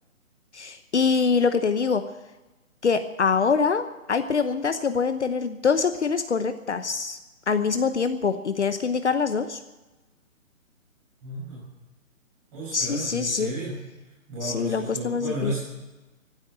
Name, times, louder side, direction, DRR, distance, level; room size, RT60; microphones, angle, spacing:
voice 1, 0.5-2.0 2.8-7.2 7.5-9.6 12.7-13.5 14.4-15.6, left 5 dB, 55° left, 9 dB, 1.0 m, -24 dB
voice 2, 11.2-11.6 12.5-13.8 14.3-15.6, right 1 dB, 10° right, -6 dB, 5.8 m, -33 dB
15.5 x 9.8 x 8.7 m, 1.1 s
hypercardioid pair, 175°, 41 cm